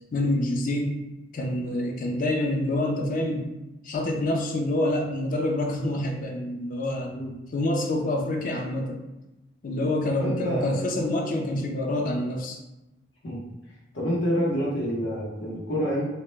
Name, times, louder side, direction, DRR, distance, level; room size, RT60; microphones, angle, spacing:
voice 1, 0.1-1.0 1.3-3.5 3.8-7.1 7.5-9.0 9.6-12.6, left 1 dB, 50° left, 2 dB, 0.4 m, -27 dB
voice 2, 10.2-10.8 11.5-11.6 13.2-13.4 13.9-16.0, equal, 85° left, -4 dB, 0.8 m, -27 dB
2.1 x 2.1 x 3.1 m, 0.97 s
head